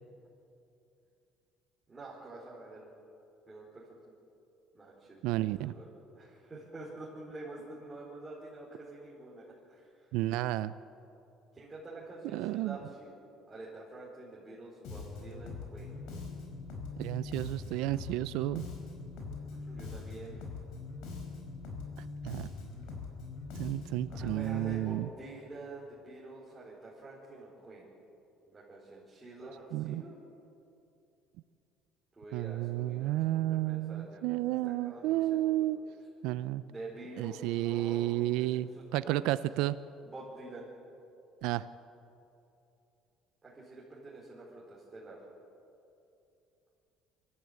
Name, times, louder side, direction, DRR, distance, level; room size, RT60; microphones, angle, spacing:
voice 1, 1.9-2.9 3.5-3.9 4.7-10.1 11.5-13.2 13.5-15.9 19.5-20.4 24.1-27.9 28.5-30.1 32.1-35.7 36.7-39.3 40.0-40.7 43.4-45.2, right 2 dB, 15° right, -7 dB, 4.7 m, -47 dB
voice 2, 5.2-5.7 10.1-10.7 12.3-12.8 17.0-18.7 22.2-22.5 23.6-25.1 29.7-30.0 32.3-35.8 36.2-36.6 37.2-39.8 41.4-41.7, right 15 dB, 80° right, 14 dB, 0.5 m, -31 dB
Bass guitar, 14.8-24.7, left 4 dB, 75° left, 5.1 m, -42 dB
25.0 x 14.0 x 8.3 m, 2.8 s
cardioid pair, 135°, 0 cm